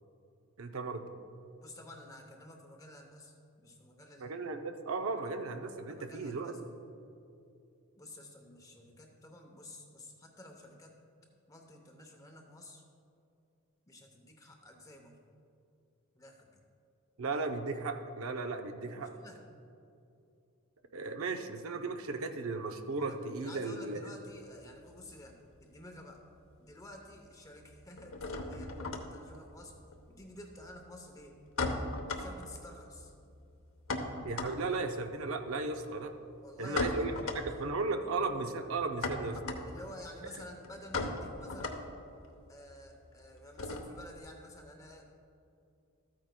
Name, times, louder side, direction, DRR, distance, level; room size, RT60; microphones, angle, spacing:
voice 1, 0.6-1.1 4.2-6.5 17.2-19.1 20.9-24.1 34.2-36.1 36.6-39.4, right 3 dB, 65° right, 6 dB, 0.6 m, -36 dB
voice 2, 1.6-4.4 4.9-5.3 5.9-6.6 8.0-11.0 11.5-12.8 13.9-15.2 16.1-16.6 19.0-19.4 23.0-26.2 26.6-29.8 30.1-31.4 32.1-33.1 36.4-36.9 37.1-37.2 39.6-41.9 42.5-45.0, left 1 dB, 15° left, 2 dB, 0.7 m, -51 dB
sound 1, 24.4-25.9 26.2-26.9 27.1-44.2, left 2 dB, 60° left, 0.8 m, -39 dB
13.5 x 9.0 x 2.2 m, 2.6 s
head